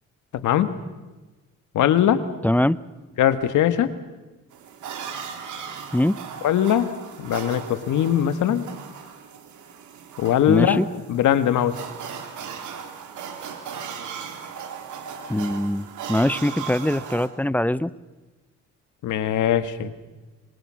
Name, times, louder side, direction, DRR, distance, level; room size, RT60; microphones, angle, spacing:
voice 1, 0.4-0.8 1.7-2.2 3.2-3.9 6.4-6.9 7.2-8.7 10.2-10.8 11.1-11.8 19.0-19.9, left 10 dB, 80° left, 11 dB, 1.8 m, -20 dB
voice 2, 2.4-2.8 5.9-6.2 10.5-10.9 15.3-17.9, left 1 dB, 5° left, 17 dB, 0.7 m, -22 dB
sound 1, 4.5-17.3, right 7 dB, 75° right, 3.5 m, -37 dB
26.0 x 24.0 x 6.4 m, 1.2 s
cardioid pair, 90°, 30 cm